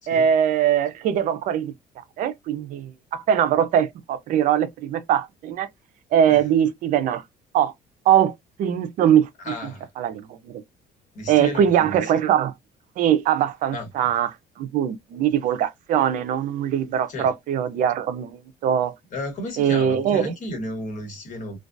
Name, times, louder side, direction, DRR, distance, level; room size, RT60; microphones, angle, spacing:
voice 1, 0.1-1.7 2.2-5.7 6.1-7.2 7.5-7.7 8.1-8.3 8.6-9.3 10.0-10.6 11.3-12.5 13.0-14.3 14.6-18.9 19.6-20.3, right 9 dB, 55° right, 0.4 m, -21 dB
voice 2, 9.4-9.9 11.1-12.1 13.7-13.9 17.1-17.3 19.1-21.6, left 1 dB, 55° left, 1.2 m, -33 dB
2.3 x 2.2 x 2.5 m
cardioid pair, 150°, 16 cm